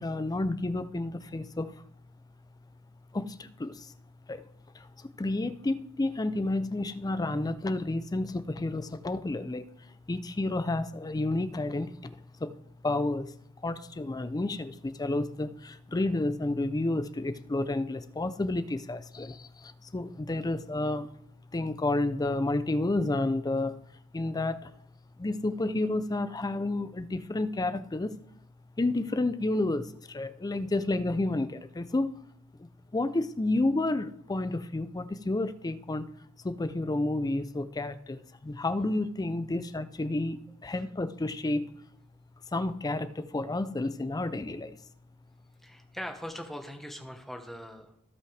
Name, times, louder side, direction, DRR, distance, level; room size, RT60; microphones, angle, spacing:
voice 1, 0.0-1.7 3.1-3.9 4.3-4.4 4.7-9.6 10.1-12.5 12.8-13.3 13.6-21.1 21.5-23.8 24.1-24.7 25.2-28.1 28.8-32.1 32.9-36.1 36.4-41.7 42.5-44.8, left 2 dB, 15° left, 13 dB, 0.4 m, -30 dB
voice 2, 45.6-48.0, equal, ahead, 4 dB, 1.1 m, -41 dB
16.0 x 5.5 x 3.3 m, 0.73 s
head